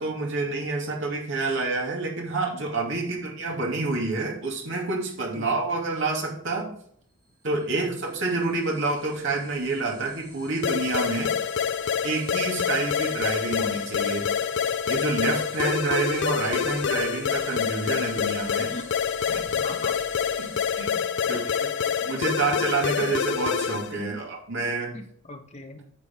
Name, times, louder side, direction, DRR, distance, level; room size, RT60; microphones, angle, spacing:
voice 1, 0.0-6.7 7.4-11.3 12.0-14.3 14.9-18.7 19.3-19.6 20.4-21.4 22.1-25.0, right 3 dB, 65° right, -1 dB, 2.6 m, -28 dB
sound 1, 7.2-20.8, right 3 dB, 25° right, 3.0 m, -49 dB
sound 2, 10.6-24.0, left 7 dB, 60° left, 0.4 m, -27 dB
voice 2, 19.6-19.9 21.2-21.4 22.4-22.5 23.0-23.1 23.9-24.2 24.9-25.9, left 1 dB, 35° left, 4 dB, 1.2 m, -40 dB
9.7 x 7.0 x 3.6 m, 0.63 s
head